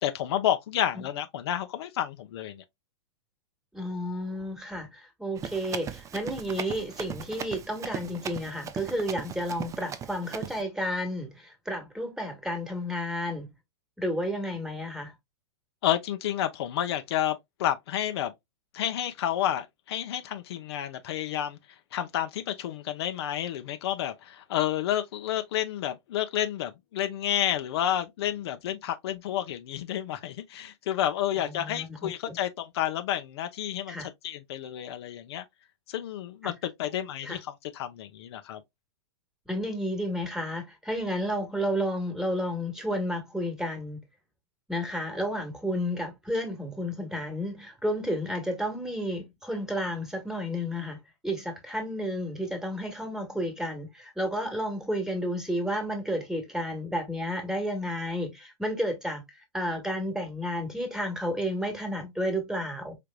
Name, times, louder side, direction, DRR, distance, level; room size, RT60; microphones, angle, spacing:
voice 1, 0.0-2.6 15.8-18.3 18.7-21.6 21.9-35.4 35.9-38.6, left 11 dB, 65° left, 0.7 m, -30 dB
voice 2, 3.7-13.5 14.0-15.1 31.4-32.3 33.9-34.1 36.4-36.5 37.2-37.4 39.5-44.0 44.7-51.0 51.2-59.2 59.5-63.0, equal, 5° right, 1.4 m, -31 dB
Run, 5.4-10.6, right 8 dB, 20° right, 0.5 m, -38 dB
5.1 x 2.9 x 2.2 m
hypercardioid pair, 115°, 15 cm